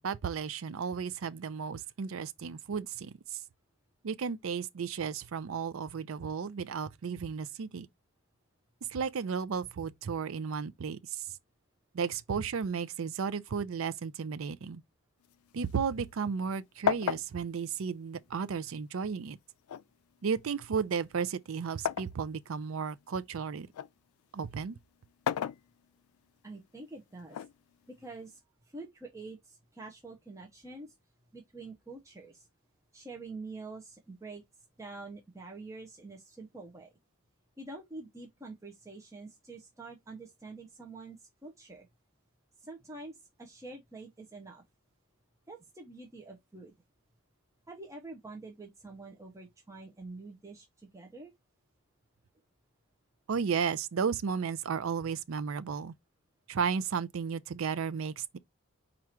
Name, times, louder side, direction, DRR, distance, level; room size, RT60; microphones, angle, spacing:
voice 1, 0.0-3.4 4.0-7.9 8.9-11.2 11.9-14.8 15.5-19.4 20.2-23.7 24.3-24.8 53.3-55.9 56.5-58.4, right 6 dB, 70° right, 0.4 m, -34 dB
sound 1, 15.2-16.5 16.9-18.8 19.7-22.2 22.7-24.0 25.0-26.2 27.3-28.3, left 9 dB, 90° left, 0.3 m, -36 dB
voice 2, 26.4-27.4 27.9-30.9 31.3-32.5 32.9-34.4 34.8-36.9 37.6-41.9 42.6-44.6 45.5-46.7 47.7-51.3, right 3 dB, 15° right, 0.7 m, -46 dB
4.7 x 2.5 x 4.3 m
head